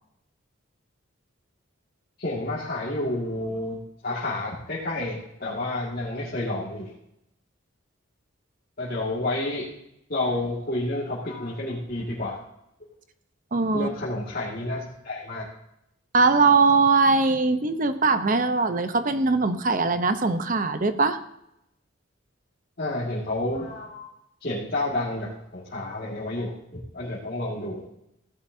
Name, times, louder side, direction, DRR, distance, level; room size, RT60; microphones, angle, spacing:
voice 1, 2.2-3.8 4.0-6.9 8.8-9.7 10.1-12.4 13.7-15.5 22.8-24.1 24.4-27.9, left 2 dB, 50° left, -7 dB, 2.1 m, -30 dB
voice 2, 13.5-13.9 16.1-21.2, right 4 dB, 40° right, 10 dB, 0.8 m, -21 dB
15.5 x 11.5 x 2.7 m, 0.80 s
head